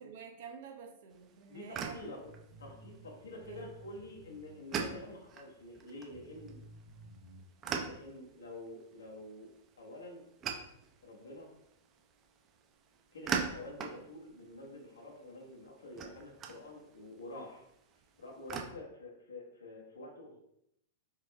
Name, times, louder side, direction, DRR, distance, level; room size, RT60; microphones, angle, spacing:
voice 1, 0.0-2.0 3.3-3.6, right 6 dB, 55° right, 3 dB, 0.9 m, -49 dB
sound 1, 1.1-18.6, right 6 dB, 30° right, 0.7 m, -44 dB
voice 2, 1.5-2.2 2.6-6.6 7.8-9.5 9.8-10.2 11.0-11.5 13.1-17.6 18.2-20.4, left 1 dB, 75° left, -2 dB, 1.2 m, -48 dB
sound 2, 2.2-4.9 5.6-5.7 6.1-7.4, right 1 dB, 80° right, 1.8 m, -54 dB
4.9 x 3.0 x 3.5 m, 0.78 s
figure-of-eight pair, 100°, 0 cm